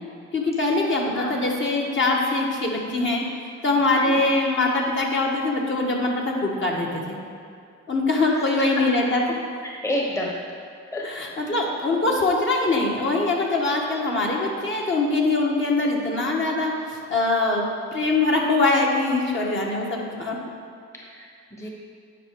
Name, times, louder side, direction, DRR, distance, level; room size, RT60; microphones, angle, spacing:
voice 1, 0.3-3.2 3.6-7.2 7.9-9.4 11.0-17.7 17.9-20.3, left 2 dB, 40° left, -1 dB, 1.6 m, -23 dB
voice 2, 9.6-10.3 10.9-11.0 12.1-12.2 21.1-21.7, left 1 dB, 10° left, -2 dB, 1.1 m, -30 dB
10.0 x 5.1 x 4.8 m, 2.4 s
cardioid pair, 90°, 30 cm